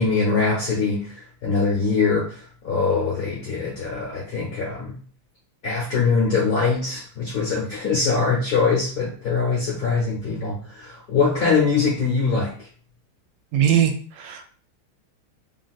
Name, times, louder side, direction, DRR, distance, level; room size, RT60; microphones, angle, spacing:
voice 1, 0.0-4.9 5.6-12.5, left 4 dB, 55° left, -5 dB, 1.1 m, -23 dB
voice 2, 13.5-14.4, right 9 dB, 75° right, 4 dB, 1.4 m, -20 dB
3.3 x 2.6 x 2.3 m, 0.42 s
omnidirectional pair, 2.4 m